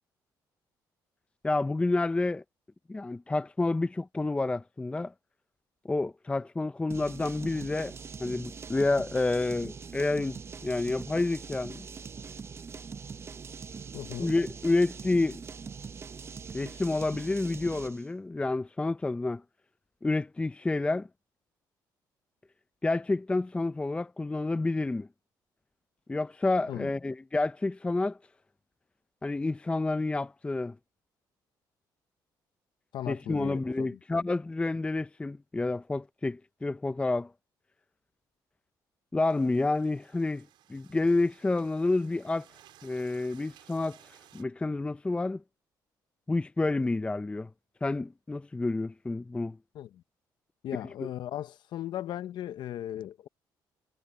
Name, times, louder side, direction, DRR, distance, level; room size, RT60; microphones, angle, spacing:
voice 1, 1.4-2.4 2.9-5.1 5.8-11.9 14.2-15.4 16.5-19.4 20.0-21.1 22.8-25.1 26.1-28.2 29.2-30.8 33.1-37.3 39.1-42.5 42.8-45.4 46.3-47.5 47.8-49.6 51.0-51.1, left 2 dB, 15° left, 0.5 m, -29 dB
sound 1, 6.9-18.1, right 5 dB, 35° right, 0.7 m, -42 dB
voice 2, 13.9-14.3 26.7-26.9 32.9-34.0 49.7-50.0 50.6-53.3, left 12 dB, 70° left, 0.9 m, -37 dB
sound 2, 39.2-44.4, right 13 dB, 85° right, 5.1 m, -58 dB
cardioid pair, 100°, 8 cm